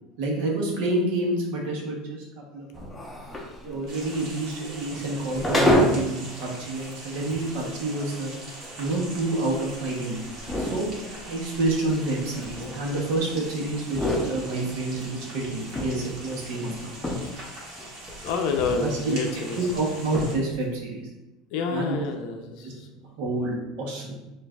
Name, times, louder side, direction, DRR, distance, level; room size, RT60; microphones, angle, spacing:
voice 1, 0.2-3.0 3.6-8.3 8.8-10.2 10.6-10.9 11.3-17.0 18.8-21.1 21.7-22.0 22.6-22.7 23.2-24.2, right 2 dB, 75° right, -1 dB, 0.9 m, -28 dB
sound 1, 2.7-6.2 6.6-6.7 7.3-7.4 7.9-13.4 13.7-15.0 15.4-17.5 17.8-18.9 19.2-19.3 19.7-19.8 20.0-20.6, left 1 dB, 5° left, 0.6 m, -29 dB
sound 2, 3.9-20.3, right 1 dB, 50° right, 1.3 m, -42 dB
voice 2, 18.2-19.6 21.5-23.1, left 5 dB, 65° left, 4 dB, 0.5 m, -29 dB
4.6 x 2.5 x 2.3 m, 1.0 s
supercardioid pair, 140°, 0 cm